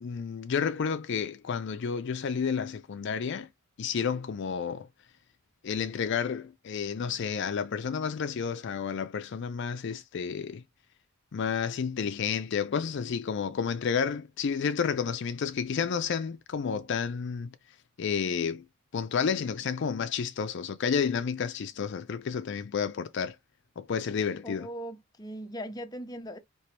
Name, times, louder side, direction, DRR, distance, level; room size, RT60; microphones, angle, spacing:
voice 1, 0.0-3.5 3.8-4.9 5.6-10.6 11.3-17.5 18.0-18.6 18.9-23.4 23.8-24.7, left 6 dB, 55° left, 0.4 m, -31 dB
voice 2, 24.4-26.4, equal, 20° left, 0.7 m, -39 dB
4.4 x 2.9 x 3.2 m
head